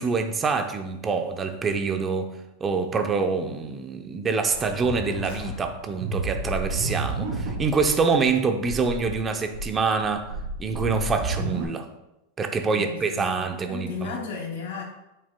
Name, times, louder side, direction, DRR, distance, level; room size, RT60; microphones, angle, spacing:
voice 1, 0.0-2.3 2.6-10.3 10.6-11.9 12.4-14.1, right 4 dB, 15° right, 6 dB, 0.6 m, -26 dB
sound 1, 4.5-6.2, left 5 dB, 55° left, 1.3 m, -37 dB
sound 2, 6.0-7.9 8.2-8.3 8.6-9.1 9.5-11.6, right 3 dB, 65° right, 2.1 m, -30 dB
voice 2, 12.7-14.8, left 5 dB, 75° left, 0 dB, 2.4 m, -35 dB
8.6 x 6.7 x 2.2 m, 0.93 s
supercardioid pair, 160°, 0 cm